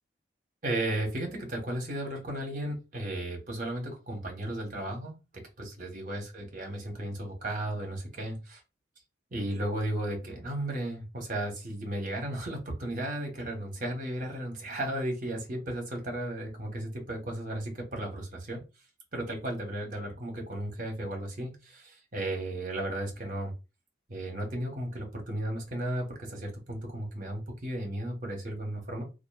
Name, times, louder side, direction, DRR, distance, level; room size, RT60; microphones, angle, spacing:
voice 1, 0.6-8.6 9.3-18.6 19.1-23.5 24.1-29.0, right 1 dB, 45° right, 1 dB, 1.0 m, -35 dB
2.9 x 2.4 x 2.3 m, 0.27 s
head